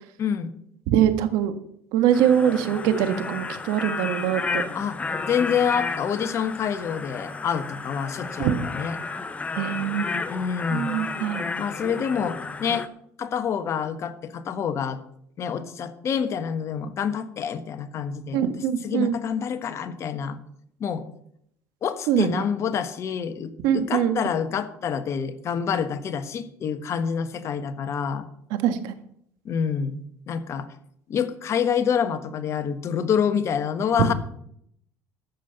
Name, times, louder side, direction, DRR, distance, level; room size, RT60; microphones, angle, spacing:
voice 1, 0.2-0.5 4.7-5.0 5.3-9.0 10.3-11.0 11.6-12.9 13.2-15.0 15.4-18.5 18.8-20.4 20.8-21.0 21.8-28.3 29.4-30.7 31.1-34.1, left 7 dB, 45° left, 9 dB, 1.3 m, -27 dB
voice 2, 0.9-1.5 1.9-4.6 8.4-8.6 9.6-10.1 10.7-11.5 18.3-19.2 22.1-22.3 23.6-24.2 28.6-28.9, right 10 dB, 80° right, 10 dB, 1.5 m, -23 dB
sound 1, 2.1-12.9, left 4 dB, 20° left, 0.9 m, -32 dB
13.5 x 5.6 x 8.1 m, 0.71 s
supercardioid pair, 105°, 7 cm